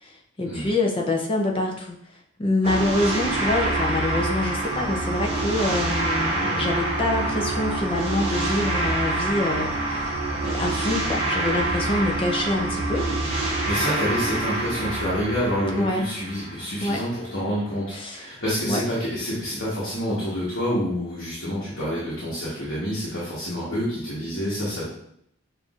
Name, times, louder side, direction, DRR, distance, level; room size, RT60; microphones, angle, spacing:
voice 1, 0.0-2.0 2.4-13.1 15.8-16.1 16.8-17.0 17.9-18.3 18.7-18.8, left 2 dB, 25° left, 1 dB, 0.5 m, -26 dB
sound 1, 2.6-17.0, right 2 dB, 30° right, 0.6 m, -26 dB
voice 2, 13.7-24.9, equal, 60° left, -8 dB, 1.2 m, -28 dB
5.8 x 2.5 x 2.4 m, 0.71 s
head